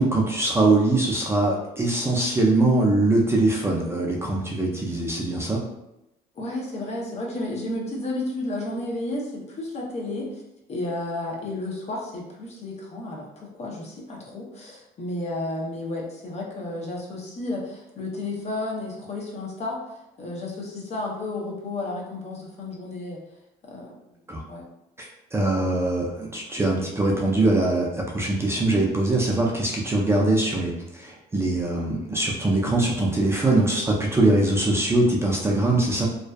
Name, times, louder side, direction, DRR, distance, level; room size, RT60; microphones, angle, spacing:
voice 1, 0.0-5.6 24.3-24.4 25.0-36.1, right 2 dB, 15° right, -2 dB, 0.4 m, -22 dB
voice 2, 6.3-10.4 10.7-23.2 23.6-23.9 24.4-24.6, left 2 dB, 40° left, -1 dB, 0.6 m, -32 dB
2.5 x 2.2 x 2.2 m, 0.88 s
cardioid pair, 110°, 17 cm